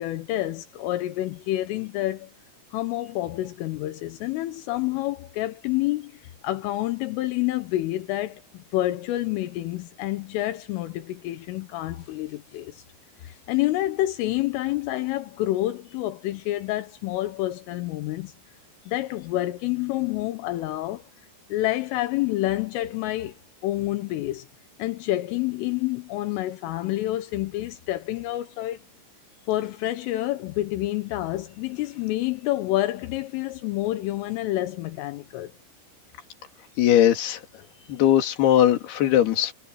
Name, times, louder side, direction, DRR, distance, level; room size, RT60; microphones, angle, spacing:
voice 1, 0.0-2.3 2.7-6.1 6.4-12.8 13.2-18.3 18.9-21.0 21.5-23.4 23.6-24.5 24.8-28.8 29.5-35.5, left 16 dB, 80° left, 3.6 m, -28 dB
voice 2, 36.8-37.4 37.9-39.5, left 11 dB, 60° left, 4.1 m, -19 dB
omnidirectional pair, 5.8 m